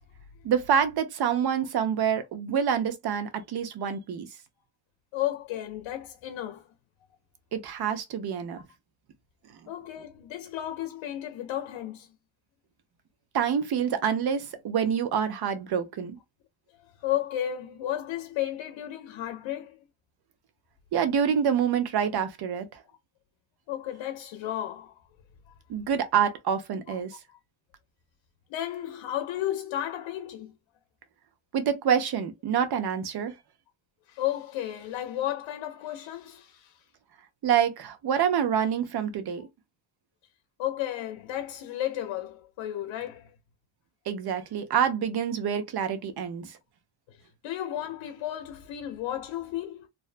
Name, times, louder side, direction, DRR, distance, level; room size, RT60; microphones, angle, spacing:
voice 1, 0.4-4.3 7.5-8.6 13.3-16.2 20.9-22.7 25.7-27.2 31.5-33.3 37.4-39.5 44.1-46.5, right 8 dB, 60° right, 0.7 m, -27 dB
voice 2, 5.1-6.7 9.7-12.1 17.0-19.8 22.9-23.0 23.7-24.9 25.5-25.6 26.9-27.0 27.3-27.4 28.5-30.5 34.1-36.8 40.6-43.3 47.1-49.9, left 12 dB, 80° left, 0.6 m, -33 dB
2.5 x 2.1 x 2.4 m
cardioid pair, 100°, 45 cm